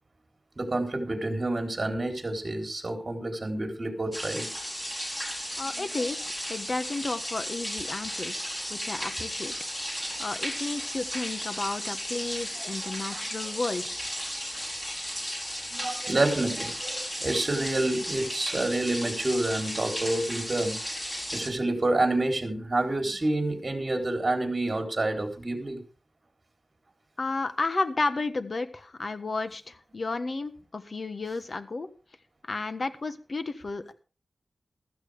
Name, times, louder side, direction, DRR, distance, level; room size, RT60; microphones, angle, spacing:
voice 1, 0.6-4.5 5.7-5.8 12.3-12.4 12.8-13.3 15.7-20.8 21.3-25.8, right 2 dB, 35° right, 4 dB, 4.1 m, -28 dB
sound 1, 4.1-21.5, equal, 15° left, 4.4 m, -35 dB
voice 2, 5.6-9.5 10.2-13.9 27.2-31.9 32.4-33.9, left 3 dB, 50° left, 11 dB, 1.4 m, -32 dB
15.5 x 14.0 x 3.6 m, 0.35 s
wide cardioid pair, 80°, 0 cm